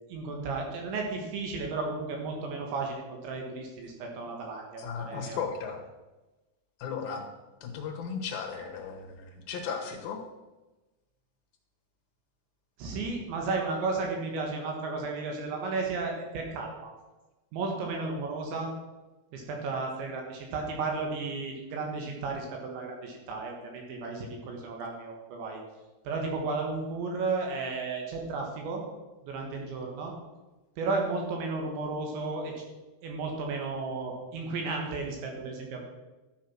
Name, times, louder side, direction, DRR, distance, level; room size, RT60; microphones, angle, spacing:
voice 1, 0.1-5.4 12.8-16.9 17.5-18.7 19.3-25.6 26.1-28.8 29.2-30.1 30.8-32.6 33.0-35.8, right 3 dB, 70° right, 1 dB, 3.8 m, -33 dB
voice 2, 4.8-5.8 6.8-7.3 7.6-10.2, left 6 dB, 70° left, 2 dB, 2.3 m, -36 dB
13.0 x 7.4 x 6.1 m, 1.1 s
omnidirectional pair, 5.8 m